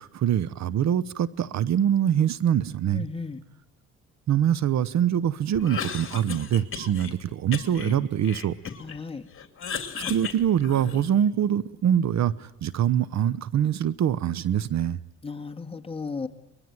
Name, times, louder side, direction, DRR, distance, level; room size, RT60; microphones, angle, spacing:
voice 1, 0.0-3.0 4.3-8.6 9.9-15.0, right 10 dB, 65° right, 0.9 m, -24 dB
voice 2, 2.9-3.4 8.8-9.2 15.2-16.3, left 4 dB, 20° left, 1.8 m, -34 dB
Cough, 5.5-7.1 7.5-9.0 9.3-11.2, left 7 dB, 45° left, 2.9 m, -35 dB
24.0 x 21.5 x 9.4 m
cardioid pair, 90°, 30 cm